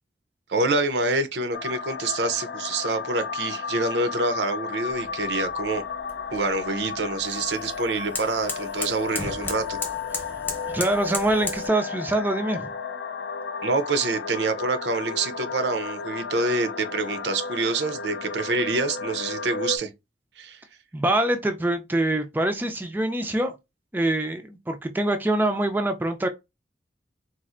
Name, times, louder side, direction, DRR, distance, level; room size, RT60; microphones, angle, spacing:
voice 1, 0.5-5.8 6.3-9.8 13.6-19.9 20.4-20.6, right 3 dB, 80° right, 0.6 m, -26 dB
sound 1, 1.5-19.8, left 5 dB, 75° left, 0.5 m, -33 dB
sound 2, 4.9-11.7, left 2 dB, 10° left, 0.8 m, -36 dB
voice 2, 10.7-12.7 20.9-23.5 23.9-26.3, right 1 dB, 10° right, 0.4 m, -24 dB
4.2 x 2.5 x 2.5 m
head